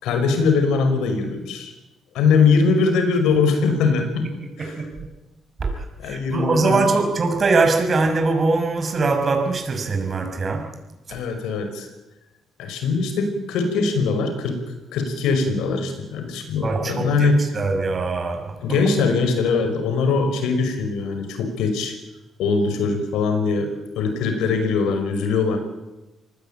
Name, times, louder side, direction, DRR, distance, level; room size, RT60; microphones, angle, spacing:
voice 1, 0.0-1.7 2.1-4.3 4.6-4.8 6.0-6.9 11.1-11.9 12.6-14.6 14.9-17.4 18.6-21.9 22.4-25.6, left 4 dB, 90° left, 7 dB, 5.7 m, -21 dB
voice 2, 4.6-5.1 5.6-5.7 6.0-10.7 16.6-18.5, right 3 dB, 40° right, 4 dB, 5.8 m, -22 dB
26.0 x 19.5 x 9.1 m, 1.0 s
cardioid pair, 90°, 0 cm